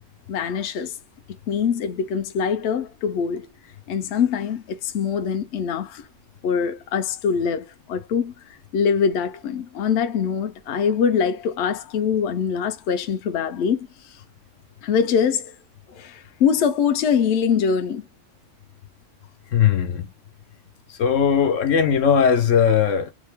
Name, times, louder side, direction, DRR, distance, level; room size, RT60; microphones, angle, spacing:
voice 1, 0.3-1.0 1.5-3.5 3.9-6.1 6.4-14.2 14.8-15.5 15.9-18.0, left 7 dB, 70° left, 0.8 m, -23 dB
voice 2, 19.5-20.1 20.9-23.1, left 7 dB, 85° left, 1.2 m, -19 dB
3.6 x 2.1 x 3.4 m
omnidirectional pair, 1.3 m